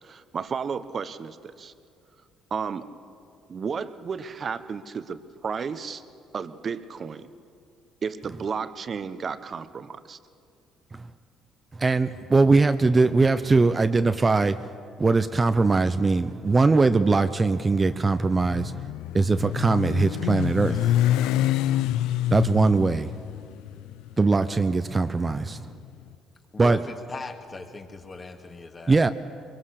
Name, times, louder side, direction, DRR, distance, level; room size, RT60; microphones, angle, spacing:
voice 1, 0.0-1.7 2.5-2.9 3.5-6.0 6.3-7.3 8.0-10.2, right 6 dB, 45° right, 12 dB, 1.1 m, -33 dB
voice 2, 11.8-14.6 15.0-18.8 19.1-20.8 22.3-23.1 24.2-25.6 26.6-26.8 28.9-29.1, right 3 dB, 25° right, 11 dB, 0.8 m, -21 dB
Motorcycle, 17.7-25.9, left 13 dB, 80° left, 0.5 m, -27 dB
voice 3, 26.5-29.0, left 3 dB, 35° left, 4 dB, 2.3 m, -39 dB
23.0 x 22.0 x 6.6 m, 2.4 s
supercardioid pair, 70°, 0 cm